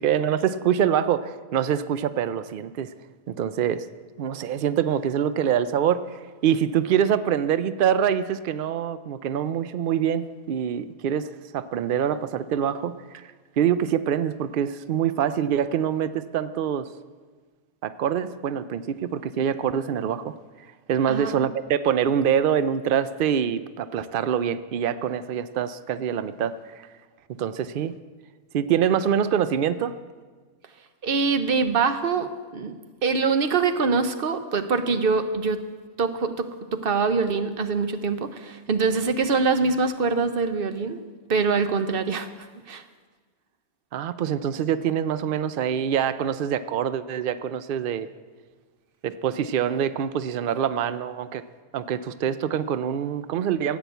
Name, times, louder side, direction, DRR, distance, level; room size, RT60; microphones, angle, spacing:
voice 1, 0.0-2.9 3.3-3.9 4.2-16.9 17.8-20.3 20.9-26.9 27.3-27.9 28.5-29.9 43.9-48.1 49.0-51.4 51.7-53.8, right 9 dB, 80° right, 13 dB, 0.4 m, -25 dB
voice 2, 21.1-21.4 31.0-35.6 36.0-41.0 41.3-42.8, right 4 dB, 45° right, 9 dB, 0.9 m, -24 dB
14.0 x 9.3 x 8.1 m, 1.4 s
omnidirectional pair, 1.5 m